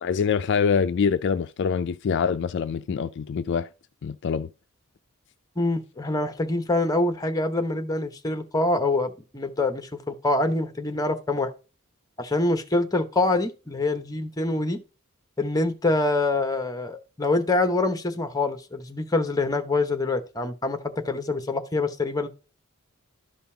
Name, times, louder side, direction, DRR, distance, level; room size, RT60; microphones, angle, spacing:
voice 1, 0.0-3.7 4.0-4.5, left 6 dB, 55° left, 0.4 m, -25 dB
voice 2, 5.6-11.5 12.2-14.8 15.4-22.3, left 2 dB, 15° left, 1.1 m, -25 dB
12.0 x 5.4 x 2.8 m
head